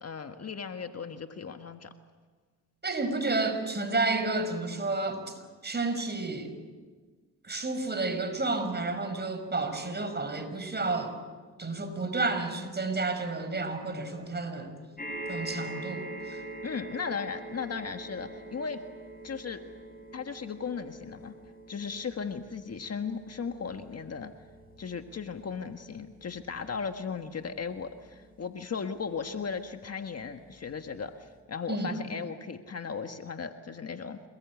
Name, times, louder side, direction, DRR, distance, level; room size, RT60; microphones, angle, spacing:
voice 1, 0.0-1.9 16.6-18.8 19.2-19.6 20.1-21.3 21.7-24.3 24.8-34.2, left 6 dB, 40° left, 7 dB, 1.5 m, -36 dB
voice 2, 2.8-6.6 7.4-11.2 11.6-14.7 15.3-16.4 31.7-31.9, right 3 dB, 25° right, 7 dB, 5.5 m, -31 dB
sound 1, 15.0-29.5 30.3-30.4 30.6-30.7, right 2 dB, 25° left, 7.8 m, -44 dB
28.5 x 20.5 x 8.4 m, 1.4 s
cardioid pair, 75°, 37 cm